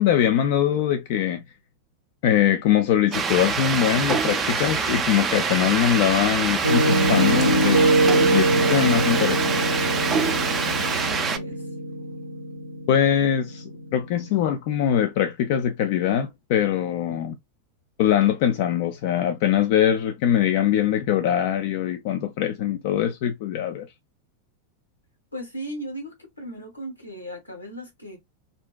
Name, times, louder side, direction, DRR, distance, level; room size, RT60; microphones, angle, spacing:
voice 1, 0.0-1.4 2.2-9.6 12.9-13.6 13.9-17.3 18.0-23.9, left 10 dB, 50° left, 0.3 m, -22 dB
sound 1, 3.1-11.4, right 5 dB, 25° right, 0.4 m, -25 dB
Water tap faucet / Toilet flush, 3.6-11.6, left 3 dB, 65° left, 0.8 m, -41 dB
Piano, 6.6-14.5, right 2 dB, 80° right, 0.5 m, -23 dB
voice 2, 11.0-11.6 17.1-17.2 25.3-28.2, right 1 dB, 85° left, 1.1 m, -37 dB
2.5 x 2.1 x 2.3 m
figure-of-eight pair, 90°, 0 cm